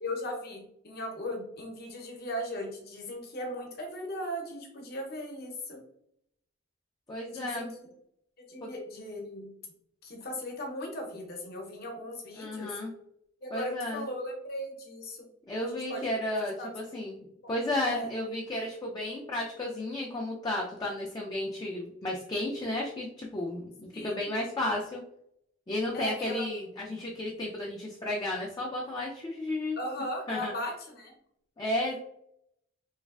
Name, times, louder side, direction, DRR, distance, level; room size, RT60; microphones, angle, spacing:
voice 1, 0.0-5.8 7.3-7.9 8.4-9.5 10.0-12.7 13.4-15.3 15.6-16.1 16.6-17.1 17.9-18.1 23.9-24.3 25.9-26.4 29.8-31.1, equal, 55° left, 1 dB, 0.7 m, -38 dB
voice 2, 7.1-7.7 8.6-8.7 12.4-12.9 13.5-14.0 15.5-25.0 25.7-29.8 30.3-30.5 31.6-32.0, left 1 dB, 20° left, -3 dB, 0.4 m, -33 dB
3.1 x 2.4 x 2.3 m, 0.75 s
head